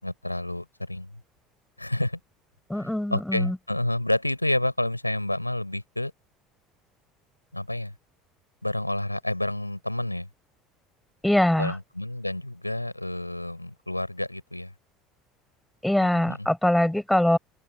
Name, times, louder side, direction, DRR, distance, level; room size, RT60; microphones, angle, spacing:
voice 1, 0.0-1.2 1.8-2.2 2.7-6.1 7.5-7.9 8.6-10.3 11.6-14.7 16.0-16.5, left 1 dB, 90° left, 6.2 m, -29 dB
voice 2, 2.7-3.6 11.2-11.8 15.8-17.4, left 1 dB, 5° left, 6.7 m, -23 dB
open air
figure-of-eight pair, 65°, 0 cm